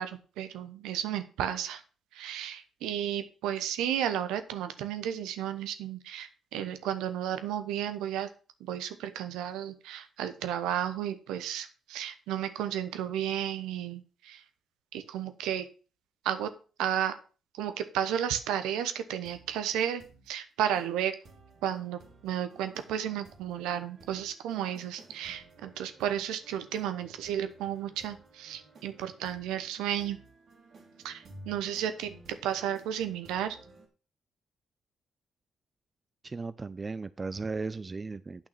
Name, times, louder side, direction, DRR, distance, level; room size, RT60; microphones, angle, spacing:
voice 1, 0.0-1.8 2.1-8.3 8.6-14.4 14.9-15.7 16.2-16.5 16.8-17.2 17.5-21.2 21.6-30.2 31.0-33.6, right 10 dB, 80° right, 10 dB, 0.9 m, -33 dB
sound 1, 19.3-19.6 20.0-20.3 20.7-20.9 21.2-33.9, right 2 dB, 60° right, 2.9 m, -55 dB
voice 2, 36.2-38.5, right 4 dB, 35° right, 15 dB, 0.5 m, -36 dB
8.8 x 5.9 x 5.9 m, 0.36 s
hypercardioid pair, 45°, 0 cm